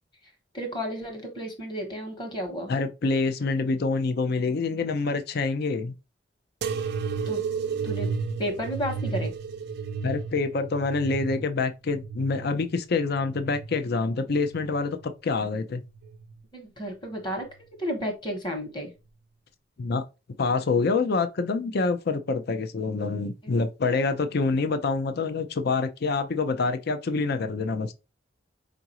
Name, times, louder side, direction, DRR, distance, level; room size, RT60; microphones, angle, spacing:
voice 1, 0.5-2.7 7.3-7.4 7.8-8.1 8.4-9.3 16.5-17.5 17.8-18.9 23.4-23.6, equal, 25° left, 1.1 m, -32 dB
voice 2, 2.7-5.9 10.0-15.8 19.8-20.0 20.4-27.9, left 4 dB, 55° left, 0.5 m, -26 dB
sound 1, 6.6-13.8 14.3-15.1 15.9-16.4 17.4-17.5, right 5 dB, 60° right, 0.4 m, -33 dB
4.7 x 2.5 x 2.9 m
head